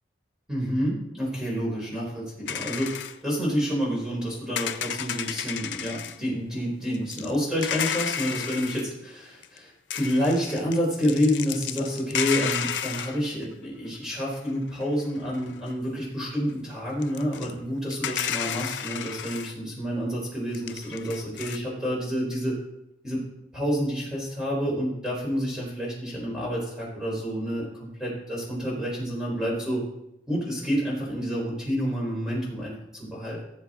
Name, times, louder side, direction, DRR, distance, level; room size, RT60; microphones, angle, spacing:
voice 1, 0.5-22.6 23.0-23.2 23.5-29.8 30.3-33.4, equal, 5° right, -5 dB, 4.3 m, -29 dB
sound 1, 2.5-3.2 4.6-6.2 6.9-8.9 9.4-9.6 9.9-13.4 14.3-14.4 14.8-14.9 15.3-15.7 17.0-17.5 17.9-19.5 20.5-21.6, left 8 dB, 90° left, 0.6 m, -32 dB
16.0 x 7.3 x 3.8 m, 0.85 s
head